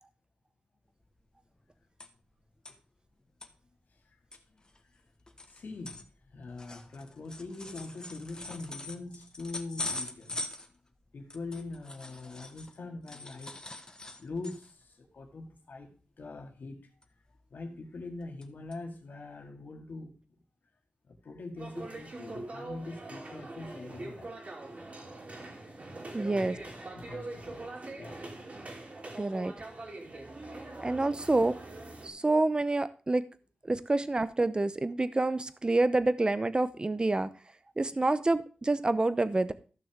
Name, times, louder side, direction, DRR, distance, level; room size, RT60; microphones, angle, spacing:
sound 1, 1.1-1.2 1.4-2.3 2.7-2.8 3.2-3.5 4.0-4.1 4.3-12.8 13.1-14.8 15.2-15.4 15.7-16.0 17.0-17.6 18.0-18.5 18.7-18.8 19.4-19.5, left 2 dB, 25° left, 1.2 m, -43 dB
voice 1, 5.5-6.0 6.3-10.4 11.1-13.6 14.2-16.9 17.5-20.2 21.1-24.3 26.2-28.2 32.2-32.3, left 3 dB, 75° left, 2.0 m, -43 dB
sound 2, 21.6-32.1, right 2 dB, 45° right, 2.7 m, -43 dB
voice 2, 26.1-26.6 29.2-29.5 30.8-31.6 32.0-33.2 33.6-37.3 37.8-39.5, right 2 dB, 25° right, 0.7 m, -27 dB
14.0 x 6.1 x 3.5 m
wide cardioid pair, 80°, 3 cm